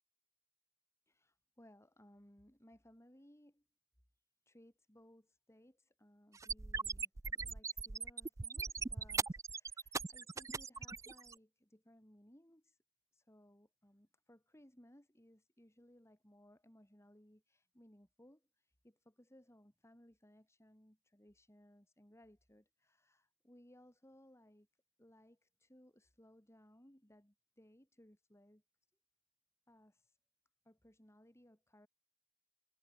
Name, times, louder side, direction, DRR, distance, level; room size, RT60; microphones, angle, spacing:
voice 1, 1.1-3.6 4.5-12.8 13.1-24.7 25.0-28.6 29.7-30.2 30.6-31.9, equal, 15° left, 4.6 m, -64 dB
sound 1, 6.3-11.3, right 4 dB, 15° right, 0.3 m, -40 dB
head